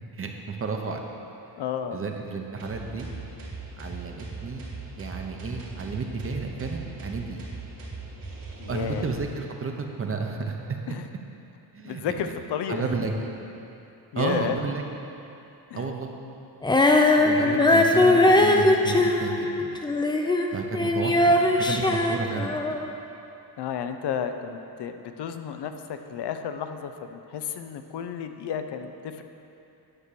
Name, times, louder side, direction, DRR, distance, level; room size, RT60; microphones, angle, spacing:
voice 1, 0.1-1.0 1.9-3.1 3.8-4.6 5.0-7.4 8.7-9.7 10.0-10.6 10.9-11.0 11.7-12.3 12.7-13.1 14.1-14.8 15.7-16.1 17.2-19.7 20.5-22.6, right 4 dB, 35° right, 2 dB, 0.8 m, -32 dB
voice 2, 1.6-2.1 8.6-9.1 10.9-11.0 11.8-12.9 14.1-14.6 15.7-15.9 17.4-17.8 20.8-20.9 23.6-29.2, left 8 dB, 85° left, 7 dB, 0.7 m, -32 dB
sound 1, 2.6-9.2, right 3 dB, 60° right, 2.2 m, -39 dB
Female singing, 16.6-20.5 20.7-22.9, left 2 dB, 10° left, 0.4 m, -20 dB
9.9 x 6.0 x 6.8 m, 2.8 s
wide cardioid pair, 170°, 39 cm